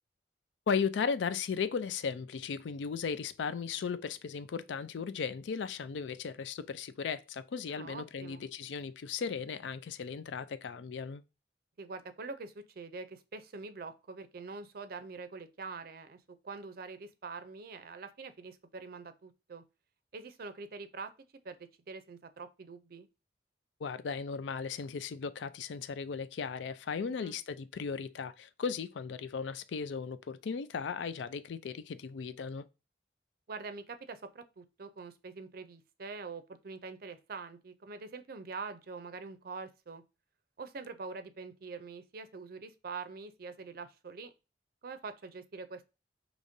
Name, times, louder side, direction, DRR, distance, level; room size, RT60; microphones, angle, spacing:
voice 1, 0.7-11.2 23.8-32.6, left 6 dB, 85° left, 0.4 m, -36 dB
voice 2, 7.7-8.4 11.8-19.6 20.1-21.1 21.4-23.1 27.1-27.4 33.5-40.0 40.6-44.3 44.8-45.8, right 4 dB, 55° right, 0.5 m, -44 dB
5.0 x 3.0 x 2.6 m
head